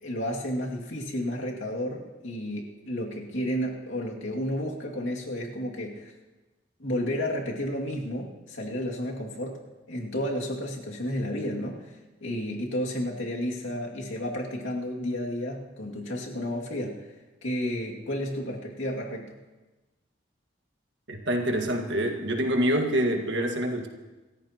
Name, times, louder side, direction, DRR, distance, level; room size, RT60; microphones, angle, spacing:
voice 1, 0.0-6.1 6.8-9.6 9.9-17.1 17.4-19.4, equal, 75° left, -1 dB, 2.4 m, -32 dB
voice 2, 21.1-23.9, equal, 60° right, 3 dB, 1.7 m, -26 dB
27.0 x 14.5 x 3.0 m, 1.2 s
head